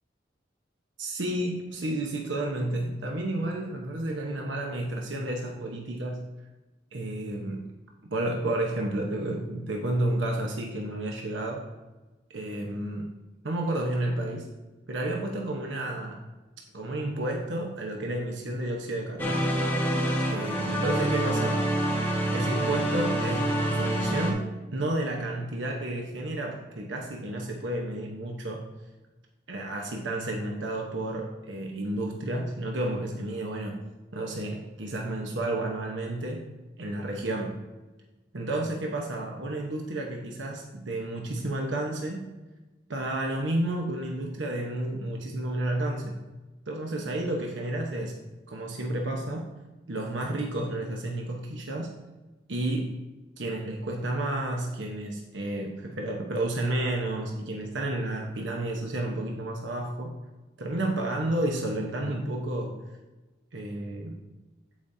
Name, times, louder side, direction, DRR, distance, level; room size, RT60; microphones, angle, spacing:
voice 1, 1.0-6.2 6.9-7.7 8.1-11.7 12.3-13.1 13.4-14.5 14.9-16.2 16.7-19.5 20.3-21.7 22.3-28.6 29.5-33.8 34.1-36.4 36.8-37.6 38.3-42.3 42.9-46.2 46.7-48.1 48.5-49.5 49.9-51.9 52.5-52.9 53.4-60.1 60.6-62.8 63.5-64.2, right 1 dB, 85° right, 1 dB, 1.0 m, -31 dB
sound 1, 19.2-24.3, right 1 dB, 10° left, 1.2 m, -26 dB
14.5 x 5.1 x 2.7 m, 1.1 s
head